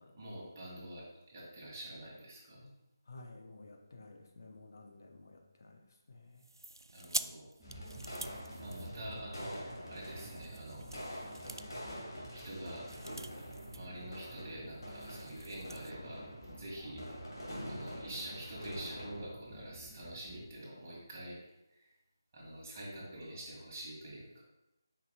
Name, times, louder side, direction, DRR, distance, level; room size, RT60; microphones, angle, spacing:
voice 1, 0.1-2.7 6.9-7.5 8.6-10.9 12.3-12.9 13.7-16.2 16.5-17.2 17.7-21.4 21.7-21.9 22.3-24.4, right 1 dB, 35° right, -5 dB, 2.3 m, -46 dB
voice 2, 3.1-6.5 9.1-9.3, left 2 dB, 50° left, 2 dB, 0.7 m, -54 dB
sound 1, 6.4-9.4 10.0-13.9 14.2-14.3 14.7-15.9, right 2 dB, 75° right, 0.3 m, -46 dB
sound 2, 7.6-19.2, equal, 75° left, 2.1 m, -46 dB
sound 3, 7.6-20.6, right 1 dB, 5° right, 0.8 m, -52 dB
8.1 x 5.3 x 2.3 m, 0.94 s
figure-of-eight pair, 155°, 2 cm